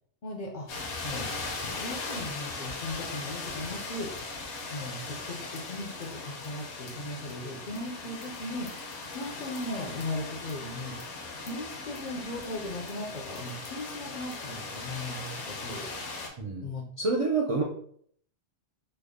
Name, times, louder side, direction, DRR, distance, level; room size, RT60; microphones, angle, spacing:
voice 1, 0.2-0.7 1.0-4.1 4.7-8.8 9.1-11.0 11.4-15.9 16.6-16.9, left 2 dB, 55° left, 0 dB, 0.5 m, -38 dB
sound 1, 0.7-16.3, left 3 dB, 70° left, 0.9 m, -39 dB
voice 2, 17.0-17.6, right 3 dB, 60° right, -1 dB, 0.3 m, -27 dB
3.3 x 2.0 x 3.5 m, 0.62 s
omnidirectional pair, 1.2 m